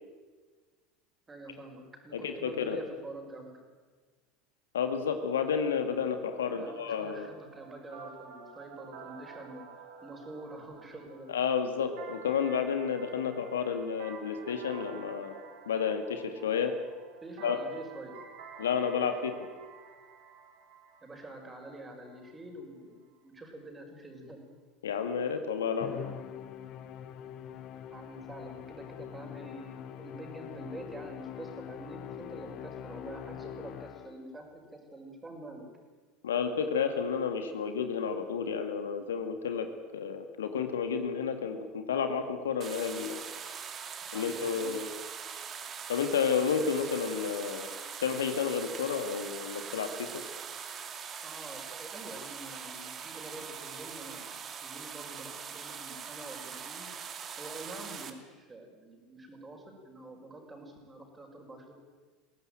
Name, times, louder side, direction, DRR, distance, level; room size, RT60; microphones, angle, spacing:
voice 1, 1.3-3.7 6.4-11.3 17.2-18.2 21.0-24.5 27.9-35.7 44.1-44.8 51.2-54.3 54.6-56.9 57.4-61.7, right 2 dB, 20° right, 3 dB, 5.8 m, -46 dB
voice 2, 2.1-2.8 4.7-7.3 11.3-15.3 15.7-16.7 17.4-17.6 18.6-19.3 24.8-26.0 36.2-39.7 39.9-43.2 44.1-44.9 45.9-47.7 48.0-50.2, left 6 dB, 75° left, 8 dB, 1.9 m, -31 dB
sound 1, 6.5-22.3, right 6 dB, 60° right, 4.1 m, -51 dB
Musical instrument, 25.8-34.4, left 10 dB, 50° left, 1.4 m, -44 dB
sound 2, 42.6-58.1, right 7 dB, 35° right, 2.3 m, -42 dB
21.0 x 17.5 x 9.1 m, 1.4 s
figure-of-eight pair, 75°, 0 cm